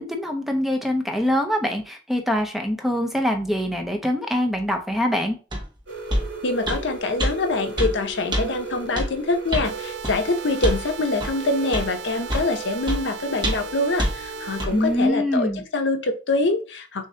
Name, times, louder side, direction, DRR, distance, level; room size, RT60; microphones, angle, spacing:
voice 1, 0.0-5.4 14.7-15.6, left 1 dB, ahead, 4 dB, 0.6 m, -24 dB
sound 1, 5.5-5.6 6.1-6.3 6.7-6.8 7.2-7.3 7.8-7.9 8.3-8.4 9.0-9.1 9.5-9.7 10.0-10.2 10.6-10.8 11.2-11.3 11.7-11.9 12.3-12.5 12.9-13.0 13.4-13.7 14.0-14.1 14.6-14.7, equal, 25° right, 1.0 m, -24 dB
sound 2, 5.9-15.1, right 2 dB, 85° right, 2.6 m, -37 dB
voice 2, 6.4-15.5 15.7-17.1, left 2 dB, 75° left, 6 dB, 0.7 m, -25 dB
sound 3, 9.6-14.6, right 7 dB, 65° right, 0.5 m, -37 dB
6.4 x 2.6 x 2.8 m, 0.34 s
head